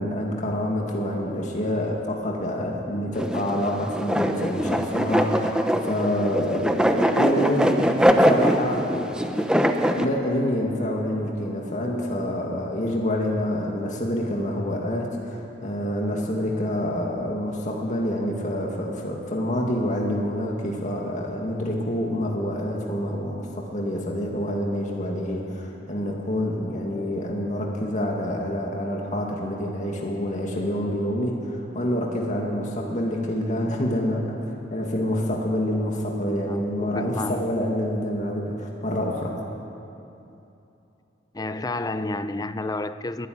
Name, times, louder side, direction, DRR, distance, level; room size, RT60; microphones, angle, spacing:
voice 1, 0.0-9.1 9.8-34.4 34.7-39.4, left 1 dB, 40° left, -1 dB, 2.2 m, -27 dB
sound 1, 3.2-10.0, equal, 5° right, 1.0 m, -22 dB
voice 2, 36.5-37.5 40.3-40.4 41.3-43.3, left 2 dB, 20° left, 12 dB, 0.6 m, -30 dB
22.5 x 12.5 x 9.5 m, 2.9 s
head